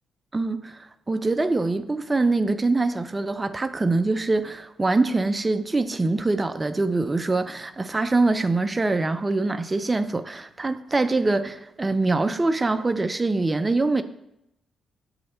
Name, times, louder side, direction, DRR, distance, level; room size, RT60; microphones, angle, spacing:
voice 1, 0.3-14.0, right 3 dB, 20° right, 10 dB, 0.4 m, -24 dB
7.8 x 3.1 x 4.2 m, 0.82 s
cardioid pair, 90°, 0 cm